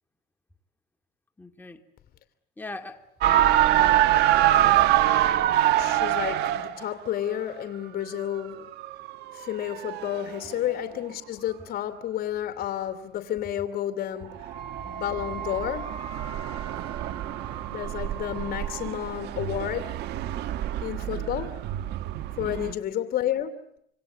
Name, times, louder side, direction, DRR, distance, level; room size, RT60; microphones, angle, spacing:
voice 1, 1.4-1.8 2.6-4.0 21.1-21.3 22.4-22.8, left 2 dB, 10° left, 2.6 m, -41 dB
sound 1, 3.2-6.8 8.4-10.7 14.3-22.7, right 13 dB, 80° right, 1.5 m, -25 dB
voice 2, 5.8-8.7 9.3-14.5 14.8-15.9 17.7-19.9 20.8-21.6 22.4-23.8, left 11 dB, 60° left, 2.7 m, -31 dB
Wind instrument woodwind instrument, 14.5-19.0, right 7 dB, 30° right, 6.8 m, -41 dB
26.5 x 26.0 x 8.4 m
cardioid pair, 110°, 17 cm